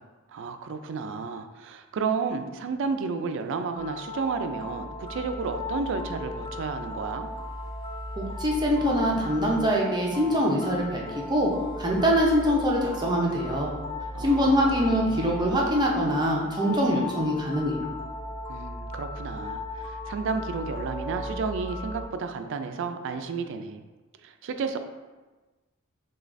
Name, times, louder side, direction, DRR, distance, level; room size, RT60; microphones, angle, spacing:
voice 1, 0.3-7.3 14.1-14.5 14.8-15.3 18.5-23.8 24.2-24.8, right 5 dB, 65° right, 8 dB, 0.3 m, -32 dB
sound 1, 3.8-22.1, left 2 dB, 25° left, 0.5 m, -36 dB
voice 2, 8.2-11.5 11.8-13.7 14.2-17.9, equal, 20° right, -2 dB, 0.6 m, -24 dB
6.3 x 2.3 x 2.5 m, 1.2 s
head